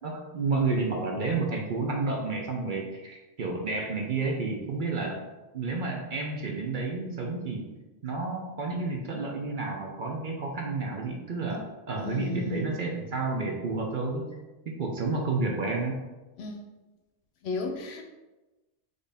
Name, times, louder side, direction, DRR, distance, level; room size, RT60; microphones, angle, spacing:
voice 1, 0.0-5.2 5.5-7.7 8.0-14.3 14.7-16.0, right 3 dB, 55° right, 0 dB, 0.7 m, -30 dB
voice 2, 12.0-12.6 16.4-16.6 17.4-18.0, left 3 dB, 70° left, 4 dB, 0.8 m, -34 dB
4.3 x 3.3 x 3.4 m, 1.1 s
omnidirectional pair, 1.2 m